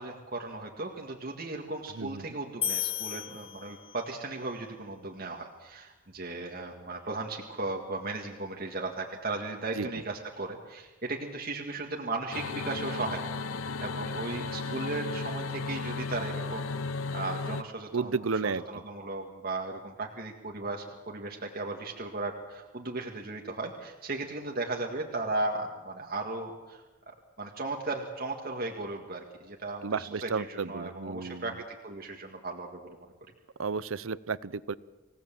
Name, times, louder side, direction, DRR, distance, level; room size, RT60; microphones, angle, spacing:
voice 1, 0.0-13.3 13.8-18.1 18.7-33.0, right 2 dB, 45° right, 1 dB, 1.9 m, -36 dB
sound 1, 2.6-4.2, left 11 dB, 30° left, 0.8 m, -34 dB
sound 2, 12.3-17.6, left 4 dB, 85° left, 0.8 m, -34 dB
voice 2, 17.9-18.6 29.8-31.5 33.6-34.7, right 4 dB, 80° right, 18 dB, 0.7 m, -32 dB
26.0 x 17.5 x 7.6 m, 1.2 s
head